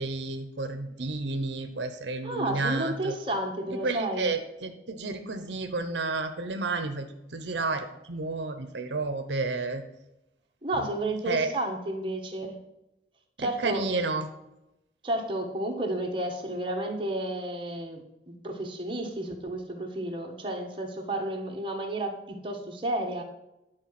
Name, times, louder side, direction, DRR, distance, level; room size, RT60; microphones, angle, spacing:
voice 1, 0.0-3.1 3.7-7.1 7.3-9.8 11.3-11.5 13.4-14.3, right 3 dB, 85° right, 7 dB, 0.8 m, -31 dB
voice 2, 2.2-4.3 10.6-12.6 13.4-13.8 15.0-23.2, right 1 dB, 30° right, 0 dB, 1.5 m, -32 dB
10.0 x 4.9 x 5.9 m, 0.91 s
head